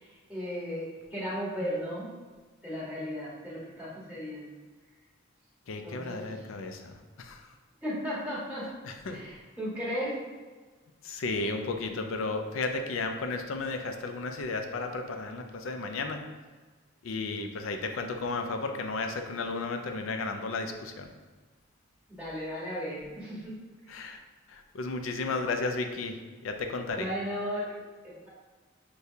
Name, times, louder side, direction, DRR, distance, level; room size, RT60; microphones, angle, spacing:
voice 1, 0.3-2.1 2.6-4.5 5.8-6.2 7.8-8.7 9.1-10.2 22.1-23.6 26.9-28.3, equal, 5° right, -8 dB, 1.2 m, -35 dB
voice 2, 5.7-7.4 8.8-9.2 11.0-16.2 17.0-21.1 23.9-24.2 24.5-26.2 26.4-27.1, left 3 dB, 90° left, 5 dB, 0.4 m, -33 dB
6.4 x 2.3 x 2.7 m, 1.4 s
head